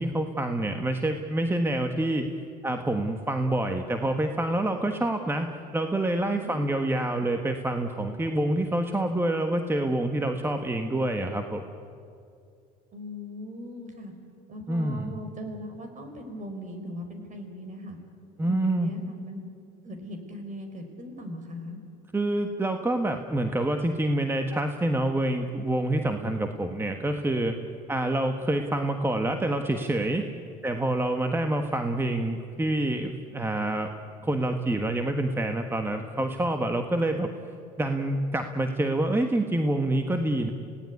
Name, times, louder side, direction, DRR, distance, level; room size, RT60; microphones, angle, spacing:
voice 1, 0.0-2.3 2.6-11.6 14.7-15.1 18.4-18.9 22.1-27.6 27.9-30.3 30.6-33.9 34.2-37.3 37.8-40.5, right 1 dB, 10° right, 6 dB, 1.4 m, -27 dB
voice 2, 6.4-6.9 12.9-14.1 14.5-18.0 18.4-19.4 19.8-21.8, equal, 40° right, 6 dB, 5.1 m, -39 dB
26.5 x 17.5 x 9.6 m, 2.5 s
supercardioid pair, 95°, 19 cm